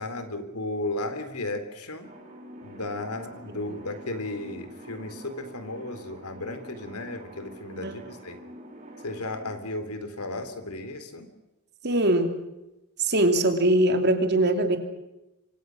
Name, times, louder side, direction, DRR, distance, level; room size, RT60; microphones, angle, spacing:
voice 1, 0.0-2.1 2.6-8.4 9.0-11.3, left 2 dB, 90° left, 9 dB, 3.5 m, -34 dB
sound 1, 2.0-9.6, right 1 dB, 35° right, 7.9 m, -46 dB
voice 2, 11.8-12.3 13.0-14.8, right 1 dB, 50° right, 6 dB, 3.0 m, -22 dB
28.5 x 24.5 x 6.4 m, 0.96 s
head